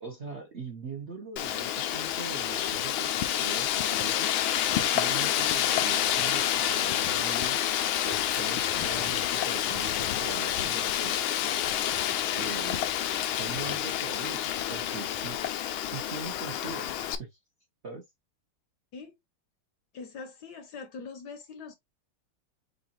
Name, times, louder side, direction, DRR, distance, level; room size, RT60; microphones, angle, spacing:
voice 1, 0.0-7.6 8.0-11.4 12.3-12.9 13.3-15.4 15.9-16.9 17.2-17.4 17.8-18.0, right 4 dB, 50° right, 0.9 m, -41 dB
Wind, 1.4-17.2, left 11 dB, 85° left, 1.5 m, -28 dB
voice 2, 19.9-21.7, left 4 dB, 65° left, 1.2 m, -42 dB
6.6 x 2.4 x 2.9 m
omnidirectional pair, 2.2 m